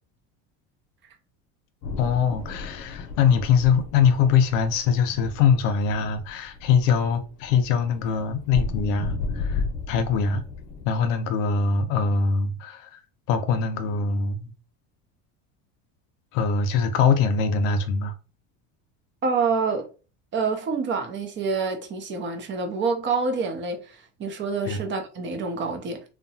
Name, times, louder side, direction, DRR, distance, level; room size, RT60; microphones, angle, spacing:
sound 1, 1.8-10.9, left 4 dB, 55° left, 0.7 m, -34 dB
voice 1, 2.0-10.4 10.8-13.0 13.3-14.5 16.3-18.1 24.7-24.8, left 6 dB, 90° left, 0.6 m, -23 dB
voice 2, 19.2-19.9 20.3-26.0, right 4 dB, 30° right, 0.6 m, -27 dB
2.8 x 2.1 x 2.7 m
supercardioid pair, 125°, 36 cm